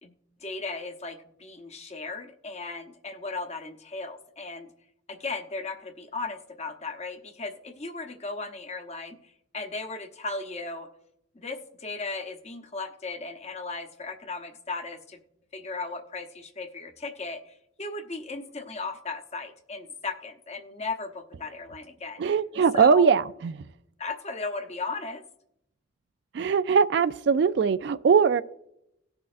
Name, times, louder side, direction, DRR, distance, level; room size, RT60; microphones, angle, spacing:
voice 1, 0.0-4.7 5.1-10.9 11.3-15.2 15.5-22.2 22.7-23.1 24.0-25.2, left 3 dB, 35° left, 0.8 m, -36 dB
voice 2, 22.2-23.6 26.3-28.4, right 6 dB, 60° right, 0.3 m, -21 dB
18.0 x 6.2 x 2.5 m
head